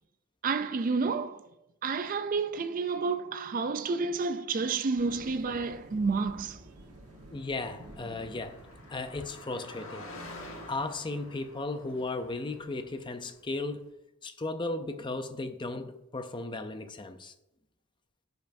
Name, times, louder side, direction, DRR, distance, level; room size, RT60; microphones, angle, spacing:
voice 1, 0.4-1.5 1.8-6.6, right 4 dB, 40° right, 0.4 m, -30 dB
sound 1, 5.0-13.9, right 1 dB, 80° right, 1.3 m, -53 dB
Car passing by, 7.1-13.1, left 1 dB, 65° left, 1.5 m, -48 dB
voice 2, 7.3-8.6 8.9-10.1 10.7-13.9 14.2-17.3, left 2 dB, 20° left, 0.5 m, -35 dB
15.0 x 5.3 x 2.6 m
head